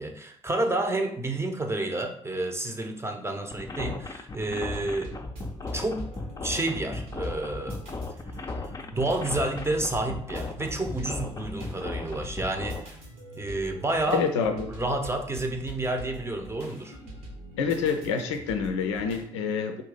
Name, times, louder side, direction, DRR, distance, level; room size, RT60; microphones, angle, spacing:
voice 1, 0.0-5.1 5.7-6.1 6.4-7.8 8.4-12.9 13.3-14.3 14.7-17.0, right 2 dB, 15° right, 4 dB, 0.7 m, -30 dB
sound 1, 3.5-12.8, left 3 dB, 25° left, 0.5 m, -36 dB
sound 2, 4.7-19.2, right 1 dB, 70° right, 1.2 m, -44 dB
voice 2, 14.1-14.7 17.6-19.8, left 6 dB, 80° left, 6 dB, 0.4 m, -27 dB
3.8 x 2.6 x 3.8 m, 0.65 s
figure-of-eight pair, 40°, 15 cm